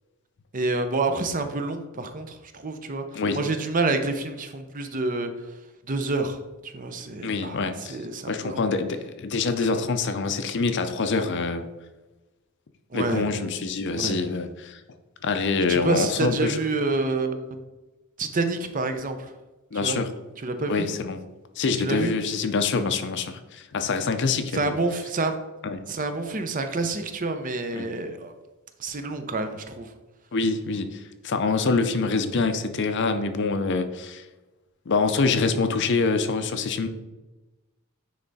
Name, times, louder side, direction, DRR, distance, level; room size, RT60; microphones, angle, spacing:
voice 1, 0.5-3.0 3.3-5.3 5.9-7.6 7.9-8.6 12.9-13.3 13.9-14.2 15.7-17.6 18.2-19.3 19.8-20.0 20.4-20.9 21.8-22.1 24.5-25.3 25.9-28.3 28.8-29.9, right 3 dB, 35° right, 7 dB, 0.6 m, -28 dB
voice 2, 7.2-8.0 8.3-11.7 12.9-14.8 15.2-16.6 19.7-20.1 20.7-21.2 21.6-24.8 25.6-25.8 27.7-27.9 30.3-34.2 34.9-36.9, left 4 dB, 50° left, 9 dB, 0.5 m, -25 dB
9.6 x 3.3 x 4.0 m, 1.1 s
head